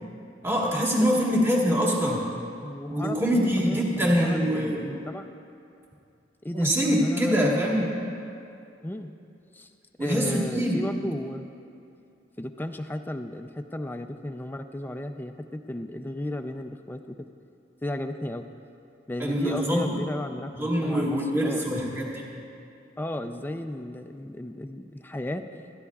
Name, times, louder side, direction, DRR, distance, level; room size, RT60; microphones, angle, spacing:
voice 1, 0.4-2.3 2.9-5.0 6.5-7.9 10.0-10.8 19.2-19.9 20.6-22.2, equal, 15° right, -3 dB, 1.4 m, -24 dB
voice 2, 1.0-1.4 2.6-5.3 6.4-6.7 7.0-7.9 8.8-9.1 9.5-9.7 10.0-11.5 12.4-17.2 17.8-18.4 19.1-22.1 23.0-25.4, left 1 dB, 10° left, 7 dB, 0.4 m, -34 dB
21.0 x 13.5 x 2.4 m, 2.6 s
head